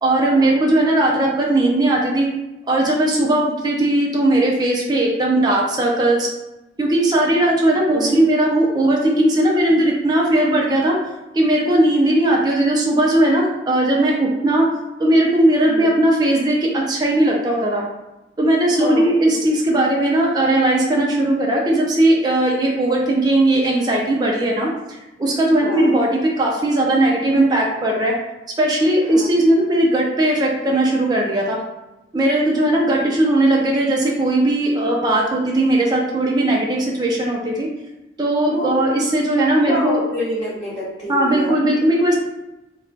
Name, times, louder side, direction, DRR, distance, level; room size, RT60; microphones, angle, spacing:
voice 1, 0.0-2.3 2.7-6.3 6.8-11.0 11.3-14.7 15.0-17.8 18.4-26.1 26.4-28.1 28.6-31.6 32.1-37.7 38.2-40.0 41.1-42.2, right 1 dB, 25° right, -2 dB, 0.4 m, -18 dB
voice 2, 7.9-8.3 15.6-16.0 18.8-19.1 25.6-25.9 29.1-29.5 38.5-38.7 39.3-41.5, equal, 25° left, -10 dB, 1.0 m, -28 dB
2.3 x 2.2 x 3.8 m, 0.98 s
head